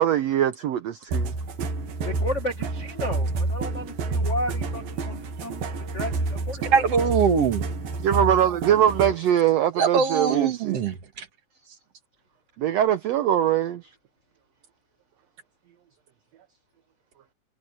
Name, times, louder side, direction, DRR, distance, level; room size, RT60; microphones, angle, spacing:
voice 1, 0.0-1.3 8.0-10.8 12.6-13.8, right 10 dB, 75° right, 1.6 m, -22 dB
sound 1, 1.1-9.3, right 3 dB, 90° right, 4.0 m, -29 dB
voice 2, 2.0-6.7, left 1 dB, 45° left, 0.9 m, -33 dB
voice 3, 6.7-7.6 9.8-11.3, right 6 dB, 55° right, 2.2 m, -22 dB
omnidirectional pair, 3.9 m